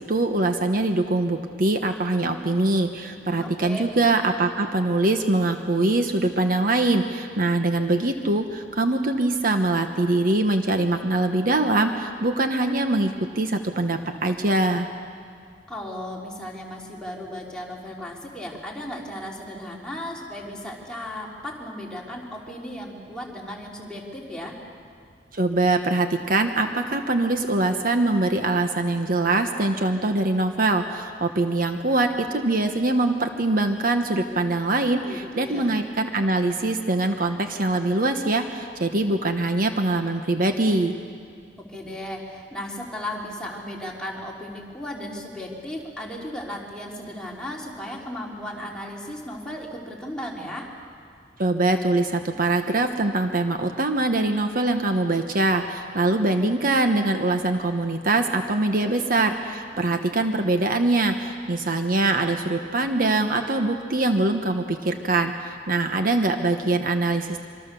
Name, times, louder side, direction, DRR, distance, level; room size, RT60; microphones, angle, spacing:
voice 1, 0.0-14.9 25.3-40.9 51.4-67.4, right 2 dB, 50° right, 6 dB, 1.1 m, -23 dB
voice 2, 3.1-3.8 15.7-24.6 35.0-35.7 41.6-50.7 58.8-59.0, left 1 dB, 5° left, -3 dB, 3.6 m, -35 dB
25.5 x 24.5 x 6.9 m, 2.2 s
head